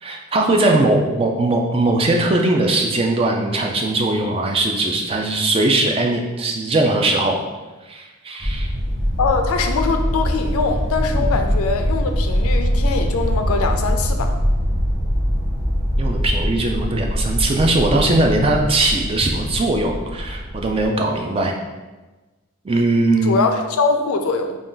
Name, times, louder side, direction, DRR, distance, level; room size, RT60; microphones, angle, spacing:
voice 1, 0.0-7.4 7.9-8.7 11.1-11.3 16.0-21.5 22.6-23.4, right 2 dB, 25° right, 1 dB, 0.3 m, -20 dB
sound 1, 8.4-20.9, equal, 5° right, 1.1 m, -22 dB
voice 2, 9.2-14.3 23.2-24.6, left 4 dB, 70° left, 6 dB, 0.4 m, -22 dB
3.8 x 2.3 x 3.7 m, 1.2 s
head